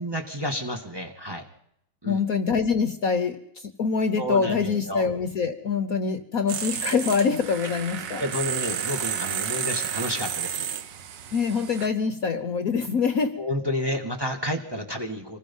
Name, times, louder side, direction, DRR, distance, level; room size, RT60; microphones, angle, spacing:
voice 1, 0.0-1.4 2.0-2.2 4.2-5.1 8.2-10.7 13.4-15.4, equal, 15° right, 1 dB, 1.8 m, -30 dB
voice 2, 2.1-8.2 11.3-13.4, left 5 dB, 55° left, 10 dB, 1.2 m, -25 dB
sound 1, 6.5-11.9, right 8 dB, 70° right, 1.6 m, -31 dB
25.5 x 20.0 x 5.5 m, 0.75 s
omnidirectional pair, 2.0 m